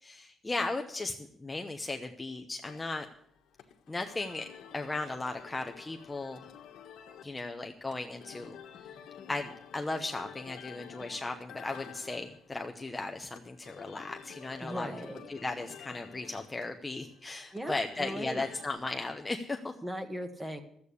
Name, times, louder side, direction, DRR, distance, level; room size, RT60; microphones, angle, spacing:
voice 1, 0.0-3.1 3.9-4.4 4.7-6.4 7.2-8.6 9.3-14.9 15.3-19.7, left 2 dB, 15° left, 4 dB, 0.8 m, -36 dB
sound 1, 2.6-18.7, left 9 dB, 80° left, 1.4 m, -51 dB
voice 2, 14.6-15.3 17.3-18.4 19.8-20.6, equal, 10° right, 7 dB, 1.6 m, -39 dB
13.0 x 8.4 x 8.3 m, 0.69 s
cardioid pair, 125°, 0 cm